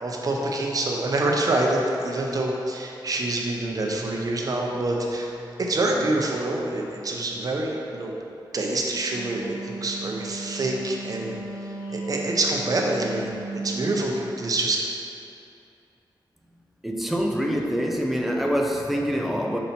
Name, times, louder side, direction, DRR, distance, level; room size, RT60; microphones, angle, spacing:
voice 1, 0.0-5.3 5.6-8.1 8.5-11.3 11.9-13.3 13.6-14.8, right 2 dB, 50° right, -1 dB, 0.7 m, -26 dB
Wind instrument woodwind instrument, 8.8-14.1, right 3 dB, 85° left, 1.1 m, -35 dB
voice 2, 16.8-19.6, equal, ahead, 1 dB, 0.4 m, -25 dB
6.0 x 4.0 x 4.1 m, 2.7 s
wide cardioid pair, 170°, 8 cm